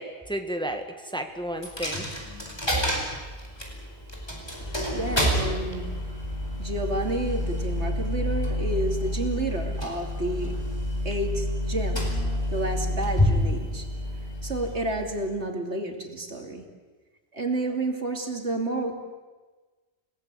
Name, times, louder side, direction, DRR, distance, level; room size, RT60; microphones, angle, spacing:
voice 1, 0.0-2.1, right 1 dB, 5° left, 5 dB, 1.8 m, -32 dB
Coin (dropping), 1.6-15.4, left 1 dB, 20° left, 4.6 m, -28 dB
voice 2, 4.9-5.9 6.6-10.6 11.0-12.1 12.5-13.9 14.4-16.6 17.3-19.0, right 2 dB, 80° right, 3 dB, 3.1 m, -30 dB
30.0 x 18.5 x 8.5 m, 1.3 s
omnidirectional pair, 1.2 m